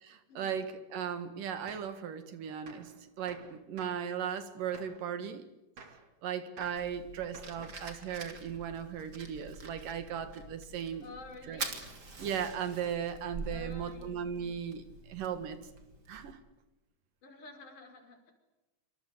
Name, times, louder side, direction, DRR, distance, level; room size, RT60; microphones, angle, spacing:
voice 1, 0.0-5.4 6.2-11.1 11.5-11.6 12.2-15.6 16.1-16.4, right 8 dB, 80° right, 10 dB, 3.5 m, -37 dB
Gunshot gunfire, 1.7-2.0 2.7-3.0 3.3-4.1 4.7-5.1 5.8-6.1 6.6-6.9 7.3-7.9, right 4 dB, 50° right, 3.7 m, -52 dB
Fire, 6.6-16.3, right 3 dB, 30° right, 3.2 m, -46 dB
voice 2, 11.0-11.8 13.5-14.2 17.2-18.3, left 2 dB, 70° left, 4 dB, 6.4 m, -50 dB
27.5 x 25.0 x 8.1 m, 1.0 s
omnidirectional pair, 3.7 m